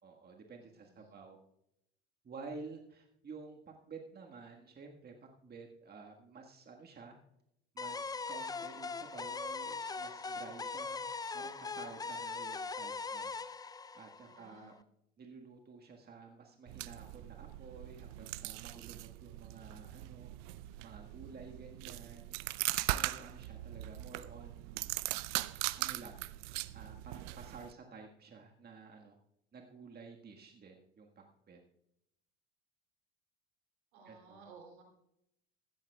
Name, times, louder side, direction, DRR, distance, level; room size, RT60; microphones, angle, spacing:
voice 1, 0.0-1.4 2.2-5.1 5.4-7.2 7.7-11.0 11.3-13.3 13.9-14.7 15.2-20.3 20.8-22.4 22.9-24.8 25.8-26.2 26.7-29.2 29.5-31.6 34.0-34.4, right 4 dB, 30° right, 2 dB, 1.6 m, -51 dB
voice 2, 0.6-1.1 14.2-14.8 33.9-34.8, right 4 dB, 75° right, 1 dB, 3.1 m, -57 dB
sound 1, 7.8-14.7, left 4 dB, 10° left, 0.4 m, -41 dB
sound 2, 16.7-27.7, right 18 dB, 60° right, 0.5 m, -40 dB
16.5 x 14.0 x 2.3 m, 0.79 s
hypercardioid pair, 65°, 32 cm